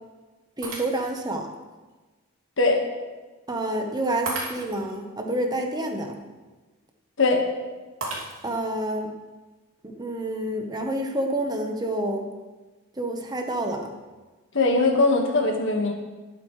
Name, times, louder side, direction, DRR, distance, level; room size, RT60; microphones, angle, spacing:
voice 1, 0.6-1.5 3.5-6.2 8.4-9.1 9.8-12.3 13.0-13.9, right 1 dB, 20° right, 3 dB, 1.2 m, -28 dB
Shatter, 0.6-1.3 1.9-2.0 4.3-5.0 8.0-8.7, right 2 dB, 65° right, 2.9 m, -34 dB
voice 2, 14.5-15.9, left 3 dB, 60° left, 2 dB, 1.8 m, -20 dB
19.5 x 9.0 x 3.3 m, 1.3 s
head